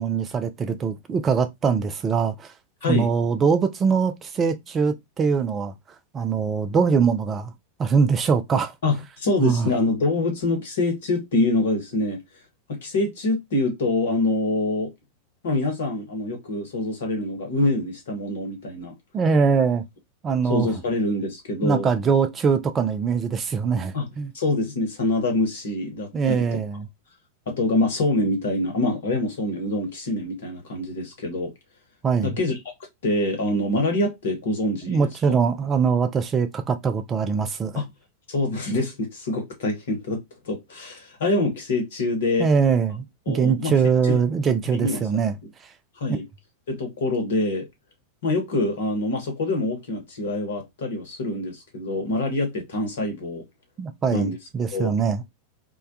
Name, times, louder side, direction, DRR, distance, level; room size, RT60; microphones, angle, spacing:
voice 1, 0.0-2.5 2.9-5.7 6.1-7.5 7.8-8.7 9.4-9.7 19.1-19.8 20.2-20.7 21.6-24.3 26.1-26.9 32.0-32.3 34.9-37.8 42.4-45.3 53.8-55.2, right 6 dB, 25° right, 0.3 m, -22 dB
voice 2, 8.8-12.2 12.7-14.9 15.4-18.9 20.5-21.9 23.9-24.1 24.3-26.6 27.5-31.5 32.2-32.6 33.0-35.4 37.7-37.8 38.3-40.2 40.4-42.5 43.3-43.7 44.0-44.2 44.7-45.0 46.0-46.2 46.7-47.7 48.2-53.4 54.1-54.4 54.7-54.9, left 2 dB, 60° left, 0.9 m, -25 dB
2.2 x 2.1 x 2.6 m
figure-of-eight pair, 90°, 0 cm